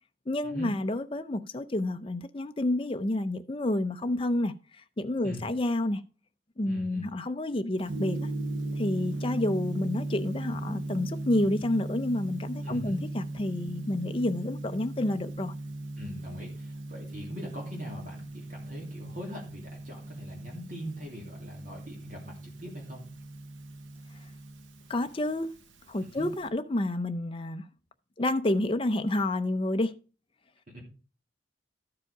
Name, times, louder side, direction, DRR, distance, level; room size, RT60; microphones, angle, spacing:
voice 1, 0.3-4.5 5.0-6.0 6.6-8.2 8.8-15.5 24.9-25.5 25.9-27.6 28.2-29.9, left 1 dB, 25° left, 0.6 m, -29 dB
voice 2, 6.6-7.1 12.6-13.0 16.0-23.0 26.1-26.3 30.7-30.8, equal, 40° right, 2.7 m, -42 dB
Gong, 7.8-26.5, right 2 dB, 85° right, 1.1 m, -38 dB
13.5 x 4.9 x 4.9 m
head